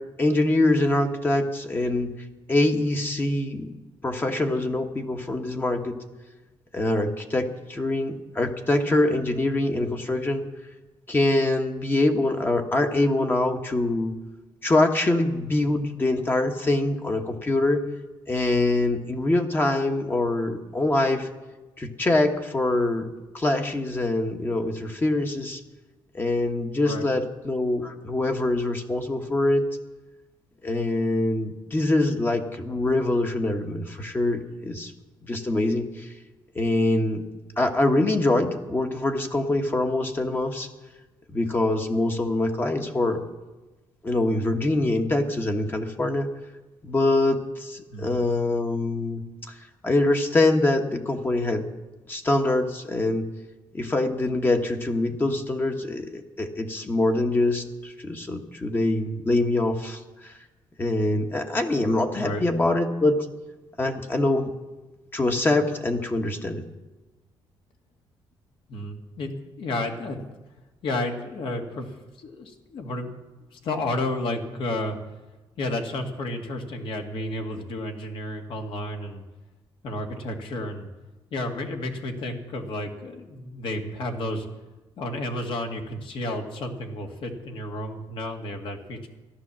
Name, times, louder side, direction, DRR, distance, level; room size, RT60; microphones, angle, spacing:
voice 1, 0.0-2.1 2.5-3.7 4.0-6.0 6.7-10.5 11.1-14.1 14.6-17.8 18.3-21.3 21.8-23.1 23.3-25.6 26.1-29.7 30.6-34.9 35.2-36.1 36.5-37.2 37.6-40.7 41.3-43.2 44.0-46.3 46.8-51.6 52.1-53.3 53.7-60.3 60.8-63.1 63.8-64.5 65.1-66.6, left 2 dB, 20° left, 4 dB, 1.2 m, -24 dB
voice 2, 68.7-70.2 70.8-73.1 73.5-75.0 75.6-79.2 79.8-80.9 81.3-84.5 85.0-89.1, left 1 dB, 65° left, 3 dB, 2.1 m, -31 dB
14.5 x 11.5 x 7.4 m, 1.1 s
cardioid pair, 130°, 9 cm